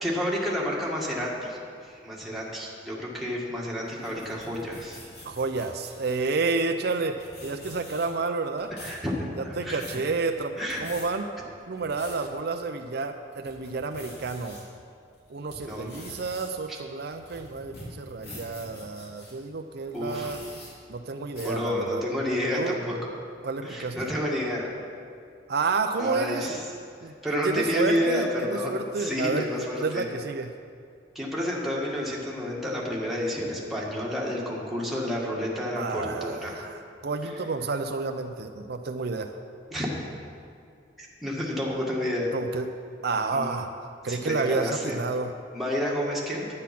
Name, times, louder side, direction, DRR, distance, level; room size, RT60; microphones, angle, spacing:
voice 1, 0.0-5.0 8.7-9.9 10.6-10.8 15.6-15.9 19.9-20.4 21.4-23.0 23.6-24.7 26.0-26.6 27.0-30.1 31.2-36.5 37.2-37.4 39.7-40.0 41.0-42.3 43.3-43.5 44.1-45.0 45.5-46.4, left 1 dB, ahead, -5 dB, 1.8 m, -30 dB
sound 1, 3.9-6.3 6.9-7.0 7.2-8.2 8.6-9.0 9.5-10.0 10.6-11.1 11.6-12.2 12.7-12.8 13.3-14.6 15.1-19.3 19.9-20.7 21.3-21.6, left 1 dB, 60° left, 3.3 m, -45 dB
voice 2, 5.2-8.7 9.4-11.3 11.7-14.6 15.3-20.4 20.9-22.0 22.6-22.8 23.4-24.1 25.5-26.5 27.0-27.1 27.4-30.5 35.8-39.4 42.3-42.7 43.0-43.7 44.0-45.3, right 4 dB, 60° right, 6 dB, 0.5 m, -30 dB
10.5 x 9.6 x 5.9 m, 2.4 s
head